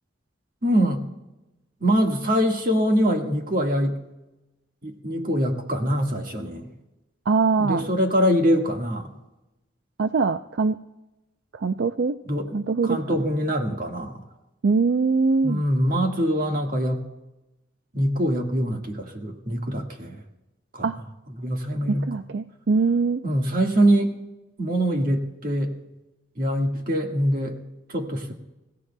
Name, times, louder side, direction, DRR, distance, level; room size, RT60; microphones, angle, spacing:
voice 1, 0.6-1.0 1.8-4.0 4.8-6.7 7.6-9.1 12.3-12.6 12.8-14.2 15.4-17.0 17.9-20.2 20.7-20.9 21.4-22.1 23.2-24.1 24.6-25.8 26.4-27.6 27.9-28.3, equal, 45° right, 2 dB, 1.7 m, -23 dB
voice 2, 7.3-7.8 10.0-10.8 11.5-12.2 12.5-13.2 14.6-15.6 20.8-21.0 21.9-23.2, right 4 dB, 70° right, 9 dB, 0.4 m, -22 dB
28.5 x 16.0 x 2.2 m, 0.99 s
head